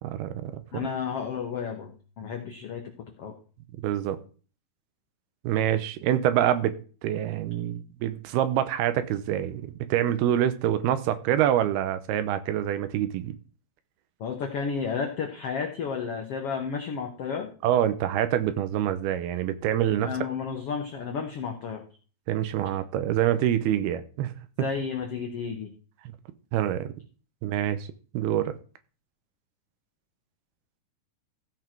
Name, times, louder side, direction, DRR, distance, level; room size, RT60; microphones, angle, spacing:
voice 1, 0.0-0.6 3.8-4.2 5.4-6.7 7.0-13.4 17.6-20.1 22.3-24.3 26.1-26.2 26.5-26.9 27.4-27.9 28.1-28.5, right 11 dB, 80° right, 11 dB, 2.8 m, -26 dB
voice 2, 0.7-3.3 14.2-17.5 20.0-21.8 24.6-25.7, left 6 dB, 75° left, 3 dB, 1.3 m, -32 dB
15.5 x 5.7 x 4.6 m, 0.39 s
omnidirectional pair, 4.5 m